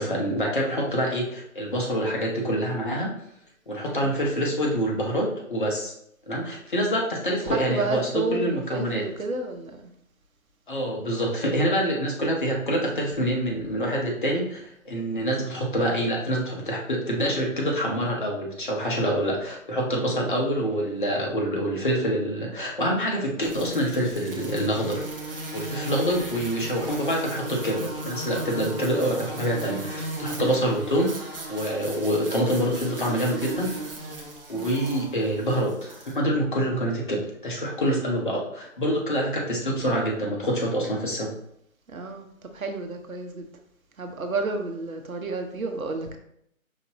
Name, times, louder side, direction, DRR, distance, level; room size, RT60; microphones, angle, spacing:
voice 1, 0.0-3.1 3.7-5.9 6.3-9.0 10.7-31.2 31.5-33.8 34.5-41.3, equal, 35° left, -1 dB, 0.8 m, -26 dB
voice 2, 7.5-9.7 30.5-30.6 34.5-34.7 41.9-42.3 42.5-43.5 44.0-46.2, right 3 dB, 75° right, 4 dB, 0.9 m, -31 dB
sound 1, 23.4-36.1, right 1 dB, 40° right, 0.7 m, -36 dB
5.1 x 2.6 x 2.8 m, 0.73 s
figure-of-eight pair, 150°, 42 cm